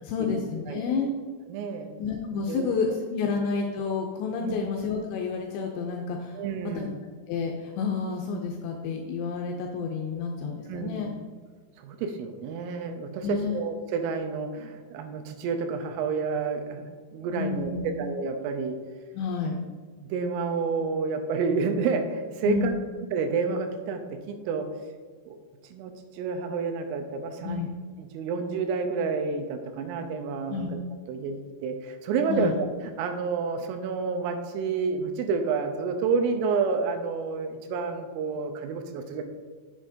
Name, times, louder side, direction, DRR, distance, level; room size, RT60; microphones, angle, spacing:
voice 1, 0.0-1.1 2.0-6.4 6.8-6.9 7.3-11.1 13.2-13.6 17.3-18.0 19.1-19.6 22.5-22.8 27.4-27.7 30.5-30.7 32.3-32.5, left 5 dB, 80° left, 1 dB, 2.6 m, -30 dB
voice 2, 1.5-1.9 2.5-2.7 4.4-4.6 6.3-7.0 10.7-11.1 11.8-18.8 20.0-22.7 23.1-24.9 25.3-25.4 25.7-27.7 28.0-30.8 31.1-32.7 33.0-39.2, right 5 dB, 85° right, 6 dB, 3.3 m, -29 dB
8.7 x 7.3 x 2.7 m, 1.5 s
omnidirectional pair, 5.7 m